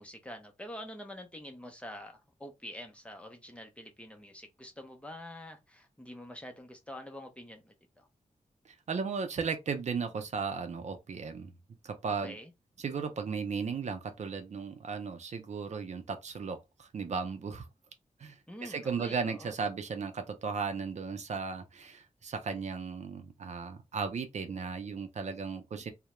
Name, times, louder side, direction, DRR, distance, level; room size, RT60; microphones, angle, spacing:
voice 1, 0.0-8.1 12.1-12.5 18.5-19.5, left 1 dB, 10° left, 0.6 m, -46 dB
voice 2, 8.7-11.5 11.8-12.4 12.8-17.7 18.2-25.9, right 5 dB, 60° right, 0.5 m, -36 dB
2.3 x 2.0 x 2.9 m
wide cardioid pair, 110°, 13 cm